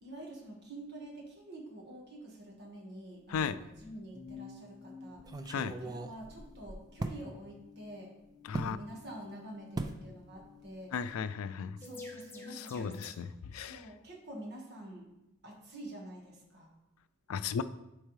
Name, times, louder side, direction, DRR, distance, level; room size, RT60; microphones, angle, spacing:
voice 1, 0.0-8.1 8.5-10.9 11.8-15.1 15.4-16.7, right 1 dB, 50° right, 0 dB, 1.5 m, -48 dB
sound 1, 3.3-3.9 4.3-4.4 5.2-7.2 8.5-8.8 9.8-10.0 10.4-10.7 10.9-11.1, right 2 dB, 20° right, 0.3 m, -39 dB
sound 2, 4.1-13.2, left 4 dB, 10° left, 0.8 m, -52 dB
voice 2, 10.9-11.8 12.6-13.8 17.3-17.6, left 6 dB, 85° left, 14 dB, 0.4 m, -35 dB
9.9 x 4.5 x 3.1 m, 0.91 s
head